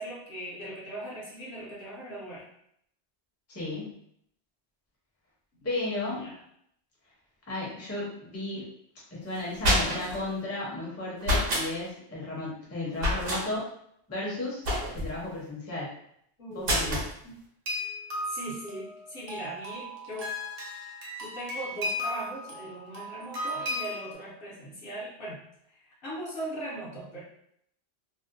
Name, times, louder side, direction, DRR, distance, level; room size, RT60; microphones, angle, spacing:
voice 1, 0.0-2.5 6.1-6.4 16.4-17.4 18.3-20.3 21.2-25.4 25.7-27.2, right 1 dB, 60° left, -6 dB, 0.9 m, -39 dB
voice 2, 3.5-3.9 5.6-6.3 7.5-8.7 9.1-13.6 14.1-14.6 14.9-15.9 16.5-17.0, left 2 dB, 15° left, -6 dB, 0.6 m, -34 dB
sound 1, 9.3-10.2 11.2-11.7 13.0-13.4 14.6-15.2 16.6-17.1, equal, 65° right, 1.0 m, -26 dB
sound 2, 17.7-24.1, left 1 dB, 45° right, 0.6 m, -36 dB
2.6 x 2.1 x 2.5 m, 0.71 s
omnidirectional pair, 1.1 m